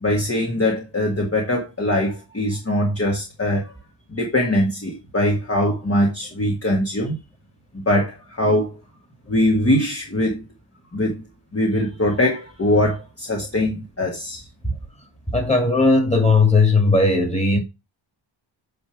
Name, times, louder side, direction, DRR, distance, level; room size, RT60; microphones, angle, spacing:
voice 1, 0.0-3.7 4.1-7.2 7.7-8.7 9.3-10.4 10.9-11.2 11.5-14.4, left 1 dB, 30° left, 1.7 m, -22 dB
voice 2, 15.3-17.6, left 3 dB, 15° left, 2.4 m, -17 dB
9.4 x 3.5 x 4.8 m
wide cardioid pair, 115°, 46 cm